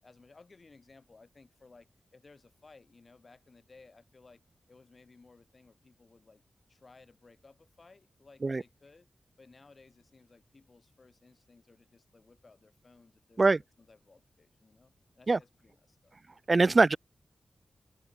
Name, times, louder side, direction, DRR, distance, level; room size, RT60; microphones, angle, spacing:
voice 1, 0.0-4.4 4.7-6.4 6.7-9.1 9.4-16.1, left 3 dB, 40° left, 6.8 m, -59 dB
voice 2, 16.5-17.0, right 3 dB, 35° right, 0.3 m, -22 dB
wide cardioid pair, 145°, 0 cm